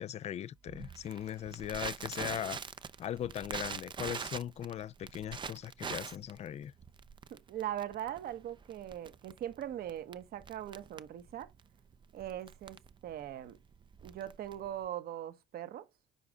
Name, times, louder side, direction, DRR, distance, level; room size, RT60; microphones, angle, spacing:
voice 1, 0.0-2.6 3.0-6.7, left 10 dB, 40° left, 0.4 m, -39 dB
Crackle, 0.7-14.9, right 6 dB, 30° right, 0.6 m, -44 dB
voice 2, 7.3-11.5 12.1-13.6 14.0-15.9, right 11 dB, 65° right, 1.2 m, -41 dB
6.9 x 4.9 x 3.7 m
cardioid pair, 110°, 17 cm